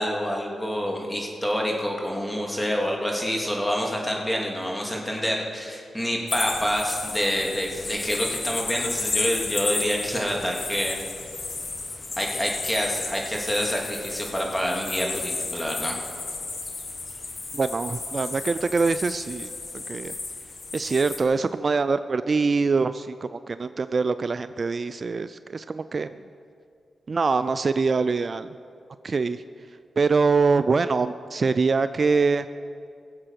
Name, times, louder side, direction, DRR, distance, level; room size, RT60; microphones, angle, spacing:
voice 1, 0.0-11.0 12.2-15.9, equal, 10° left, -1 dB, 3.1 m, -27 dB
sound 1, 6.3-21.2, left 3 dB, 50° left, 1.6 m, -33 dB
voice 2, 17.5-20.2 20.7-26.2 27.1-28.5 29.0-29.4 30.0-32.5, right 4 dB, 50° right, 13 dB, 0.4 m, -24 dB
21.0 x 7.8 x 5.9 m, 2.3 s
supercardioid pair, 45°, 0 cm